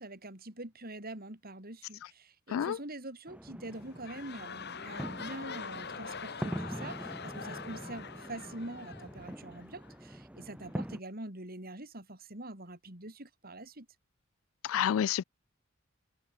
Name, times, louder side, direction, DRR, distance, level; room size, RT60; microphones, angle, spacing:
voice 1, 0.0-13.9, right 2 dB, 45° right, 5.2 m, -45 dB
sound 1, 3.3-11.0, equal, 5° right, 1.1 m, -43 dB
sound 2, 3.6-9.9 10.6-10.7, left 5 dB, 55° left, 3.6 m, -44 dB
voice 2, 14.6-15.2, left 9 dB, 70° left, 0.3 m, -29 dB
head